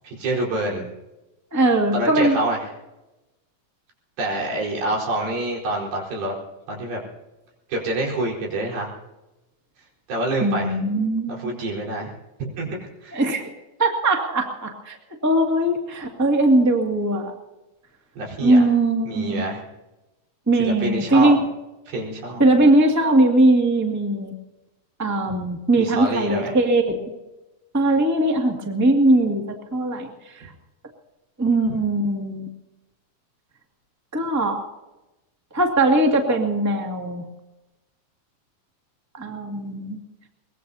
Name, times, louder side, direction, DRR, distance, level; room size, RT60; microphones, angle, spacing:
voice 1, 0.0-0.9 1.9-2.6 4.2-6.3 6.7-7.0 7.7-8.9 10.1-10.8 11.3-12.1 12.6-13.2 18.2-18.6 19.0-19.6 20.6-21.3 21.9-22.5 25.8-26.5, right 1 dB, 80° right, -2 dB, 6.5 m, -26 dB
voice 2, 1.5-2.4 10.4-11.5 13.1-13.4 13.8-15.0 15.2-17.3 18.4-19.4 20.5-21.4 22.4-24.3 25.0-27.0 27.7-29.4 29.7-30.1 31.4-32.5 34.1-34.6 35.5-37.2 39.2-40.0, right 2 dB, 10° right, 1 dB, 1.2 m, -20 dB
23.5 x 21.0 x 2.8 m, 1.0 s
omnidirectional pair, 4.3 m